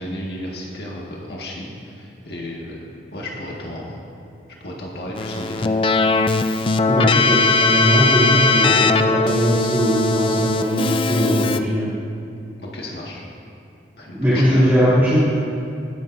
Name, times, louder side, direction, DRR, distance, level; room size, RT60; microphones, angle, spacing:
voice 1, 0.0-4.0 4.6-5.8 12.6-13.2 14.0-14.7, left 1 dB, 70° left, -3 dB, 1.8 m, -33 dB
Keyboard (musical), 5.2-11.6, left 3 dB, 30° left, 0.3 m, -19 dB
voice 2, 6.9-11.9 14.1-15.5, equal, 15° right, -13 dB, 2.6 m, -19 dB
21.0 x 10.5 x 2.7 m, 2.5 s
head